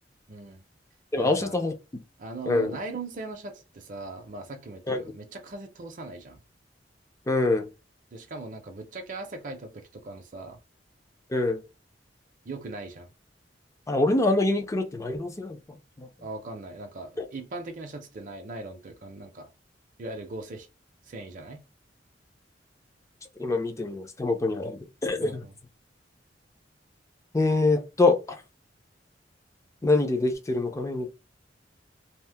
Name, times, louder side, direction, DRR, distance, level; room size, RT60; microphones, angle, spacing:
voice 1, 0.3-0.6 1.2-1.6 2.2-6.4 8.1-10.6 12.5-13.1 16.2-19.5 20.0-20.7 21.1-21.6 25.2-25.5, right 2 dB, 45° right, 0.5 m, -39 dB
voice 2, 1.1-1.7 2.5-2.8 4.9-5.0 7.3-7.7 11.3-11.6 13.9-16.1 17.2-17.3 23.4-25.4 27.3-28.4 29.8-31.1, left 2 dB, 15° left, 0.4 m, -25 dB
2.7 x 2.0 x 3.3 m
head